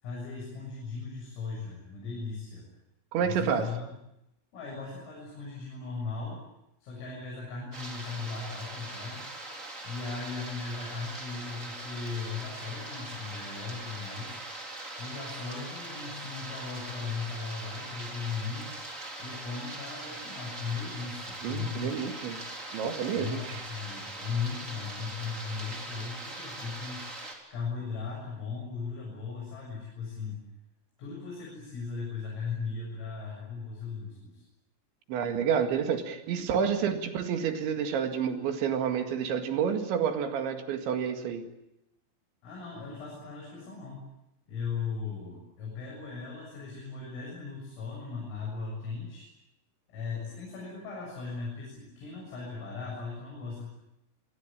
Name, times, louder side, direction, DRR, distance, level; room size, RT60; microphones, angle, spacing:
voice 1, 0.0-2.6 3.2-3.9 4.5-6.4 6.8-9.3 9.8-14.4 15.0-18.8 19.2-22.0 23.1-27.0 27.5-30.4 31.0-34.4 42.4-44.1 44.5-49.3 49.9-53.7, left 5 dB, 80° left, -3 dB, 10.0 m, -37 dB
voice 2, 3.1-3.7 21.4-22.4 22.7-23.6 35.1-41.5, right 7 dB, 70° right, 7 dB, 4.1 m, -29 dB
sound 1, 7.7-27.3, right 2 dB, 15° right, 3.8 m, -41 dB
27.0 x 22.0 x 8.8 m, 0.85 s
omnidirectional pair, 5.9 m